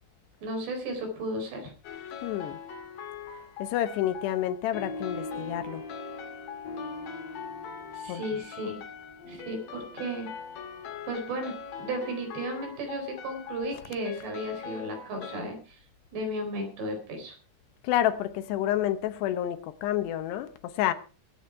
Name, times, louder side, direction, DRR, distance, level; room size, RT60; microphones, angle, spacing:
voice 1, 0.4-1.7 7.9-8.8 9.3-10.3 11.1-15.8 16.1-17.3, right 1 dB, 75° right, 6.5 m, -34 dB
sound 1, 1.8-15.4, left 7 dB, 60° left, 3.1 m, -42 dB
voice 2, 2.2-2.6 3.6-5.8 8.1-8.2 17.8-20.9, left 12 dB, 80° left, 2.9 m, -29 dB
sound 2, 4.7-11.6, left 2 dB, 40° left, 4.9 m, -42 dB
22.0 x 8.5 x 4.6 m
omnidirectional pair, 5.0 m